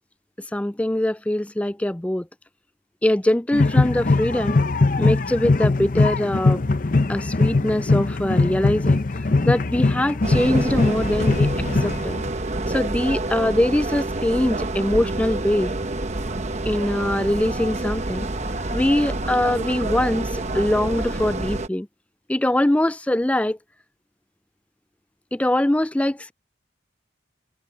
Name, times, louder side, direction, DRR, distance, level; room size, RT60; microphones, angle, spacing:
voice 1, 0.4-2.3 3.0-4.6 5.0-6.6 7.1-9.0 9.4-11.5 11.8-12.2 12.7-15.7 16.7-18.3 18.7-21.9 22.3-23.6 25.3-26.3, left 1 dB, 5° left, 0.3 m, -22 dB
sound 1, 3.5-12.3, left 3 dB, 45° left, 0.7 m, -21 dB
sound 2, 10.2-21.7, right 2 dB, 35° right, 0.9 m, -28 dB
head